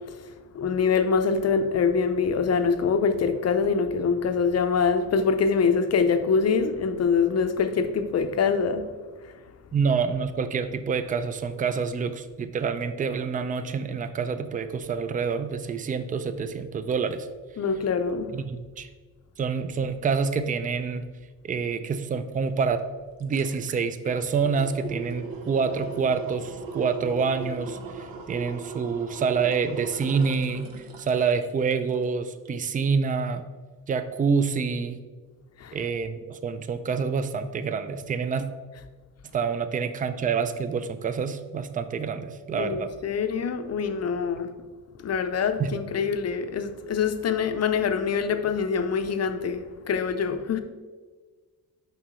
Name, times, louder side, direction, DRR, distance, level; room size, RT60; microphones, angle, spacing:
voice 1, 0.5-8.9 17.6-18.3 35.6-35.8 42.6-44.5 45.0-50.6, left 5 dB, 45° left, 0.6 m, -24 dB
voice 2, 9.7-17.3 18.3-18.9 19.4-21.0 21.4-22.8 23.2-30.7 31.0-33.4 33.9-35.0 35.7-38.5 39.3-42.9 45.6-45.7, right 5 dB, 25° right, 0.4 m, -27 dB
sound 1, 22.6-22.7 23.0-32.1 32.5-32.6, right 5 dB, 80° right, 0.9 m, -39 dB
7.6 x 5.4 x 3.1 m
cardioid pair, 110°, 35 cm